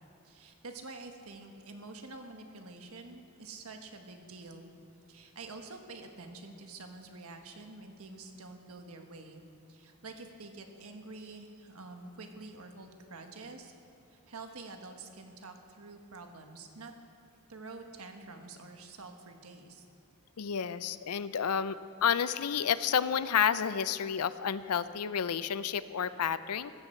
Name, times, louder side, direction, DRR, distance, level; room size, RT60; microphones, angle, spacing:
voice 1, 0.2-4.7 5.1-9.4 9.7-13.7 14.1-16.9 17.5-19.8, right 3 dB, 75° right, 5 dB, 1.4 m, -47 dB
voice 2, 20.4-26.7, left 8 dB, 90° left, 15 dB, 0.5 m, -30 dB
15.0 x 15.0 x 4.5 m, 2.7 s
head